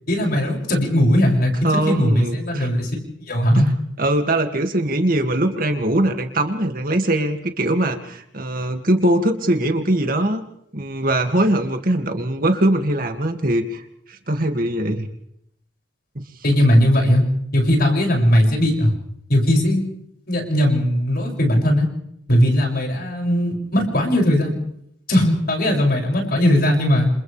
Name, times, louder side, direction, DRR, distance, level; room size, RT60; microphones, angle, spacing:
voice 1, 0.1-1.5 1.9-2.9 3.3-3.7 16.4-17.2 17.5-18.9 19.3-19.8 20.3-21.9 22.3-24.6 25.1-27.1, equal, 55° left, 0 dB, 6.8 m, -18 dB
voice 2, 1.6-2.7 3.5-3.7 4.0-10.4 10.7-13.8 14.1-15.1, right 1 dB, 50° right, 5 dB, 2.3 m, -21 dB
29.5 x 27.5 x 3.5 m, 0.73 s
head